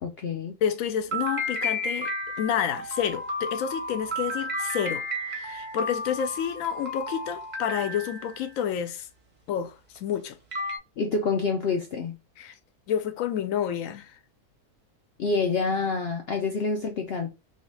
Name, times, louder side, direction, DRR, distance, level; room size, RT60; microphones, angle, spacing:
voice 1, 0.0-0.5 11.0-12.2 15.2-17.3, left 4 dB, 85° left, 0.5 m, -27 dB
voice 2, 0.6-2.1 2.4-9.1 9.5-10.4 12.4-12.5 12.9-14.2, left 9 dB, 70° left, 0.9 m, -29 dB
sound 1, 1.1-8.5 10.0-10.1 10.5-10.8, left 1 dB, 40° right, 0.6 m, -32 dB
2.8 x 2.7 x 3.2 m
omnidirectional pair, 1.6 m